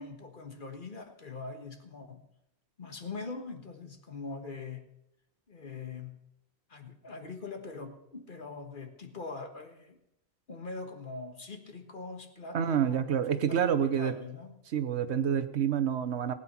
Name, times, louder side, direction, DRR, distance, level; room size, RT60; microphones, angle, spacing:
voice 1, 0.0-2.2 2.8-4.8 5.5-6.2 6.7-10.0 10.5-14.6, left 4 dB, 50° left, 6 dB, 1.6 m, -42 dB
voice 2, 12.5-14.1 14.7-16.3, right 8 dB, 85° right, 10 dB, 1.2 m, -28 dB
19.0 x 9.1 x 6.0 m, 0.82 s
omnidirectional pair, 1.1 m